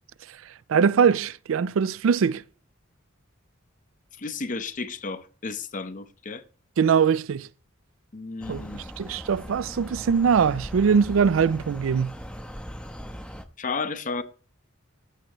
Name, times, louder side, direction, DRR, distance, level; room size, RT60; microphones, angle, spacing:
voice 1, 0.7-2.4 6.8-7.5 8.5-12.1, right 6 dB, 70° right, 0.4 m, -22 dB
voice 2, 4.2-6.4 8.1-8.8 13.6-14.2, left 4 dB, 40° left, 0.7 m, -33 dB
sound 1, 8.4-13.5, equal, 5° left, 0.7 m, -39 dB
15.0 x 7.8 x 3.0 m
head